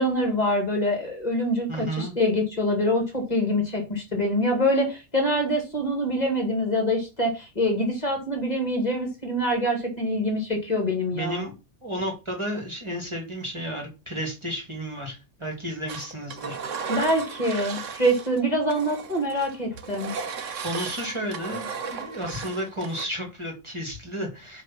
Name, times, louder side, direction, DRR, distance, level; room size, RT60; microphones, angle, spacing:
voice 1, 0.0-11.5 16.9-20.1, equal, 35° left, 2 dB, 2.4 m, -25 dB
voice 2, 1.7-2.1 11.1-11.5 11.8-16.6 20.6-24.6, equal, 25° right, 0 dB, 2.3 m, -32 dB
Engine, 15.9-18.4 18.7-23.1, right 5 dB, 85° right, 1.3 m, -35 dB
8.2 x 3.7 x 5.9 m, 0.28 s
omnidirectional pair, 1.3 m